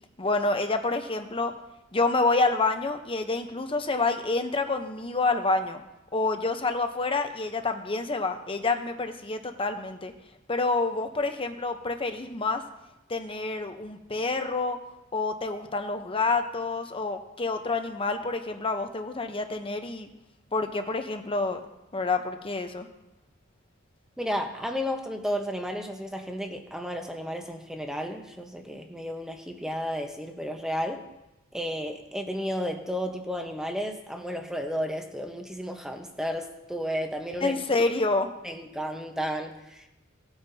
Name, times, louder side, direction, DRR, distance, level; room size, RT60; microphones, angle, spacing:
voice 1, 0.2-1.5 1.9-5.8 6.1-10.1 10.5-12.6 13.1-14.8 15.1-20.1 20.5-21.6 21.9-22.9 37.4-38.3, left 3 dB, 25° left, 6 dB, 0.9 m, -28 dB
voice 2, 24.2-31.0 31.5-37.6 38.4-39.9, equal, 5° right, 3 dB, 1.0 m, -33 dB
18.0 x 8.9 x 2.8 m, 0.94 s
head